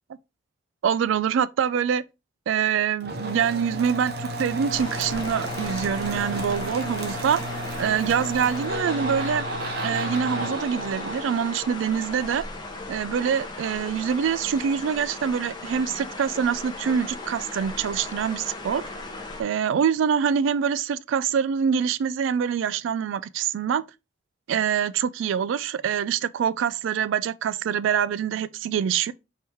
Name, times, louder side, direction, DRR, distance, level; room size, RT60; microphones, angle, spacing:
voice 1, 0.8-2.0 2.5-7.4 7.8-9.5 9.8-12.4 12.9-18.8 19.4-23.8 24.5-29.1, right 7 dB, 80° right, 0.3 m, -25 dB
sound 1, 3.0-12.6, right 1 dB, 55° right, 0.8 m, -33 dB
sound 2, 4.7-19.4, left 2 dB, 20° left, 0.8 m, -37 dB
4.6 x 3.0 x 3.3 m
head